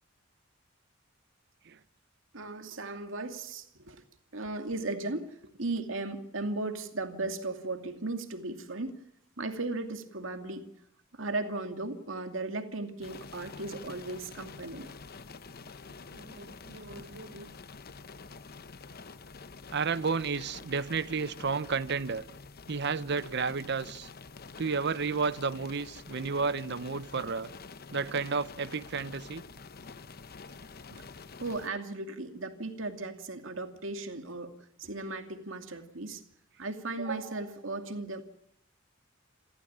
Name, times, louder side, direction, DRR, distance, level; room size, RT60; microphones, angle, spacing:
voice 1, 2.3-4.0 4.3-9.0 9.4-10.7 11.1-14.9 31.4-34.5 34.8-36.2 36.6-38.2, right 2 dB, 70° right, 2.5 m, -36 dB
sound 1, 13.0-31.7, left 4 dB, 50° left, 0.9 m, -48 dB
voice 2, 16.1-17.5 19.7-22.2 22.7-24.1 24.6-27.5 27.9-29.4, right 5 dB, 55° right, 0.8 m, -32 dB
28.5 x 14.0 x 8.8 m
head